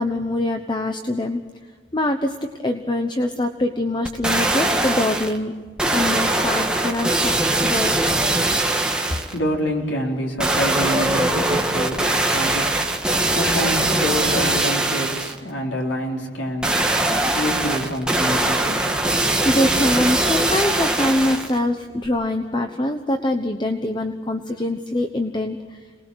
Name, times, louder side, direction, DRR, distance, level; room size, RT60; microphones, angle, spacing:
voice 1, 0.0-1.4 1.9-2.4 2.6-5.5 5.9-8.0 19.4-25.8, left 1 dB, 25° left, 6 dB, 1.0 m, -24 dB
sound 1, 4.0-5.4 5.8-9.4 10.4-15.4 16.6-21.6 22.0-22.1, right 2 dB, 5° right, 1.7 m, -21 dB
voice 2, 8.8-19.3, equal, 80° left, 0 dB, 3.9 m, -28 dB
27.0 x 20.0 x 6.4 m, 1.5 s
head